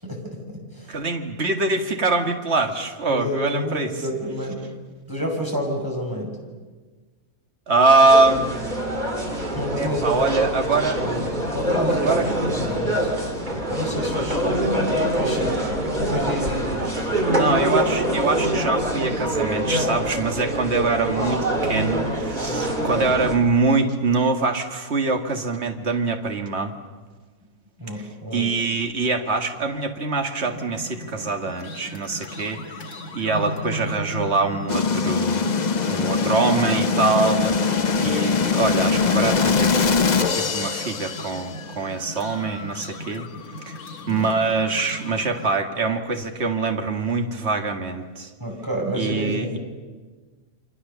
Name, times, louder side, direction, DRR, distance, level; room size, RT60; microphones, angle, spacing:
voice 1, 0.0-1.0 3.1-4.6 5.1-6.3 9.5-10.3 10.7-11.1 11.5-12.2 12.5-13.1 13.7-14.6 15.1-15.6 16.1-16.9 27.8-28.5 44.1-44.3 48.4-49.6, equal, 15° right, 0 dB, 6.4 m, -29 dB
voice 2, 0.9-3.9 7.7-8.5 9.8-11.0 11.9-12.2 17.3-26.7 27.9-32.6 33.1-35.4 35.9-37.6 38.0-39.9 40.3-43.3 43.7-43.8 44.1-48.3 48.9-49.6, right 3 dB, 45° right, 5 dB, 2.2 m, -23 dB
sound 1, 8.1-23.4, right 1 dB, 30° right, 3.6 m, -24 dB
sound 2, 30.4-45.6, left 1 dB, 80° left, 2.2 m, -37 dB
sound 3, 34.7-41.6, left 5 dB, 35° left, 0.8 m, -22 dB
29.5 x 25.5 x 7.0 m, 1.4 s
omnidirectional pair, 1.5 m